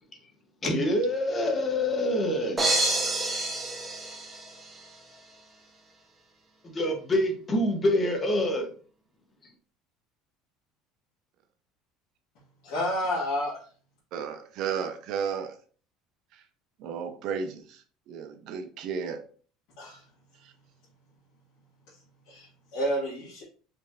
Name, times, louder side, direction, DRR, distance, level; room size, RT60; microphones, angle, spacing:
voice 1, 0.6-2.6 6.6-8.7, left 1 dB, 25° left, 1.1 m, -26 dB
sound 1, 2.6-4.8, right 2 dB, 15° right, 1.0 m, -28 dB
voice 2, 12.6-13.6 19.8-20.0 22.3-23.4, equal, 75° left, 2.0 m, -30 dB
voice 3, 14.1-15.5 16.3-16.4 16.8-19.2 20.4-20.5, right 7 dB, 55° right, 0.7 m, -34 dB
5.1 x 3.3 x 2.6 m
cardioid pair, 145°, 0 cm